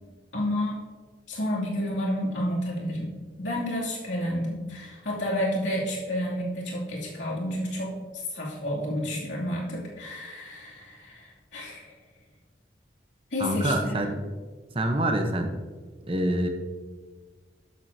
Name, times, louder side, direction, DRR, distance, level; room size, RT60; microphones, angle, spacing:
voice 1, 0.3-0.8 1.3-3.1 3.4-7.9 8.3-11.9 13.3-14.1, equal, 85° left, -4 dB, 2.6 m, -30 dB
voice 2, 13.4-14.1 14.7-15.5 16.1-16.5, right 1 dB, 30° right, 5 dB, 0.9 m, -25 dB
12.5 x 7.7 x 2.8 m, 1.4 s
head